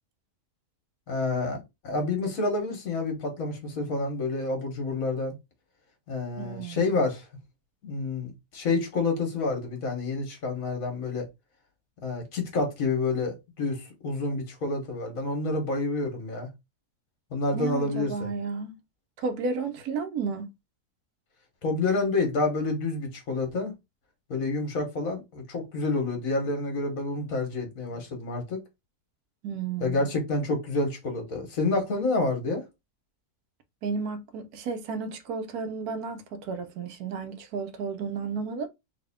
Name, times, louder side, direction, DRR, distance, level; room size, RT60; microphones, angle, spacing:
voice 1, 1.1-5.3 6.1-7.2 7.8-11.3 12.0-16.5 17.3-18.3 21.6-23.7 24.3-28.6 29.8-32.6, left 3 dB, 60° left, 1.6 m, -28 dB
voice 2, 6.4-6.8 17.5-18.7 19.2-20.5 29.4-30.1 33.8-38.7, right 5 dB, 75° right, 1.2 m, -32 dB
3.6 x 2.8 x 3.4 m
omnidirectional pair, 1.6 m